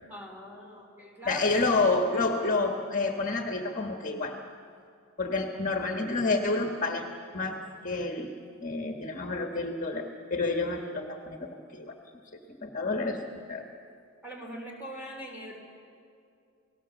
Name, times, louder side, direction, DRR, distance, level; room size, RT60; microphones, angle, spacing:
voice 1, 0.1-1.6 14.2-15.6, equal, 10° right, 0 dB, 3.9 m, -42 dB
voice 2, 1.2-4.4 5.2-8.3 8.6-12.0 12.6-13.6, left 3 dB, 35° left, 3 dB, 1.5 m, -29 dB
29.0 x 18.5 x 7.2 m, 2.5 s
head